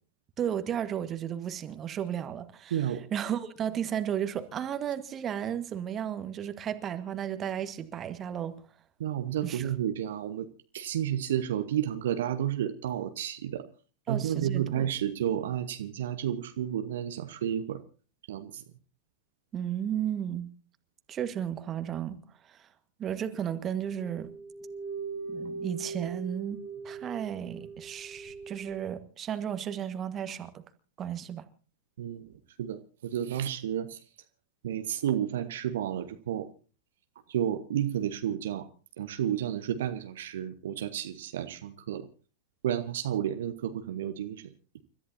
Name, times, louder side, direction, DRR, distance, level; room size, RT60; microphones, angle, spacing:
voice 1, 0.4-2.8 3.1-8.5 9.4-9.7 14.1-14.9 19.5-20.5 21.1-22.2 22.4-22.7 23.0-24.3 25.3-30.6 31.0-31.4, right 9 dB, 25° right, 1.6 m, -34 dB
voice 2, 9.0-10.5 10.7-13.6 14.1-17.8 18.3-18.6 32.0-34.0 34.6-36.5 37.3-38.7 39.0-42.1 42.6-44.5, right 10 dB, 60° right, 1.1 m, -31 dB
sound 1, 23.8-28.9, right 4 dB, 55° left, 7.1 m, -40 dB
30.0 x 14.0 x 2.8 m
figure-of-eight pair, 90°, 0 cm